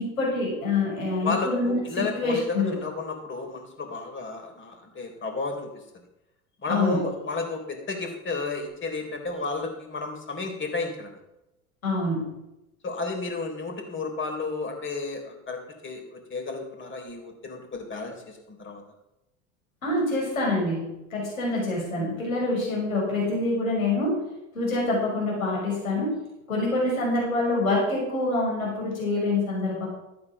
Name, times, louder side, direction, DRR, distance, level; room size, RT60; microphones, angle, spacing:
voice 1, 0.0-2.8 6.7-7.0 11.8-12.4 19.8-24.3 24.5-26.2 26.5-29.9, left 2 dB, 90° left, -3 dB, 6.1 m, -26 dB
voice 2, 1.2-5.8 6.6-11.2 12.8-18.8, left 3 dB, 30° left, 4 dB, 3.9 m, -32 dB
14.0 x 8.7 x 6.1 m, 0.92 s
hypercardioid pair, 80°, 40 cm